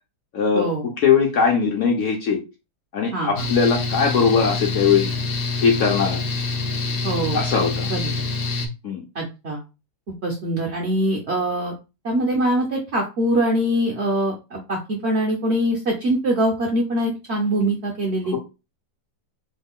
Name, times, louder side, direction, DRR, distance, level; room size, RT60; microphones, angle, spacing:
voice 1, 0.3-2.4 2.9-5.1 5.6-6.2 7.3-7.9 8.8-9.0 18.3-18.4, left 6 dB, 60° left, 2 dB, 0.8 m, -20 dB
voice 2, 3.1-3.4 7.0-7.4 7.8-8.1 9.1-9.6 10.2-11.7 12.0-18.4, right 1 dB, 60° right, 0 dB, 0.7 m, -23 dB
Mechanical fan, 3.4-8.7, left 3 dB, 80° left, 0.5 m, -26 dB
3.2 x 2.2 x 3.5 m, 0.28 s
omnidirectional pair, 1.8 m